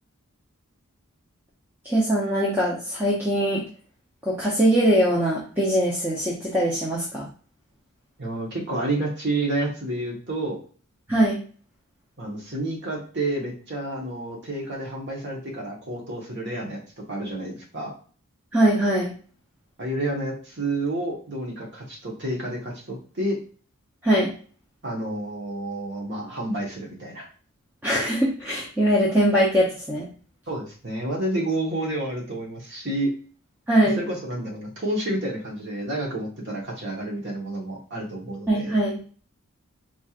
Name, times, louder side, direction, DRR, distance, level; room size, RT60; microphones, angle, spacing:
voice 1, 1.8-3.6 4.3-7.3 11.1-11.4 18.5-19.1 24.0-24.3 27.8-30.1 33.7-34.0 38.5-39.0, right 1 dB, 10° right, -6 dB, 0.7 m, -21 dB
voice 2, 8.2-10.6 12.2-16.8 17.1-17.9 19.8-23.4 24.8-27.3 30.5-33.1 34.0-38.8, right 1 dB, 50° right, -1 dB, 1.2 m, -29 dB
4.3 x 3.0 x 2.4 m, 0.41 s
head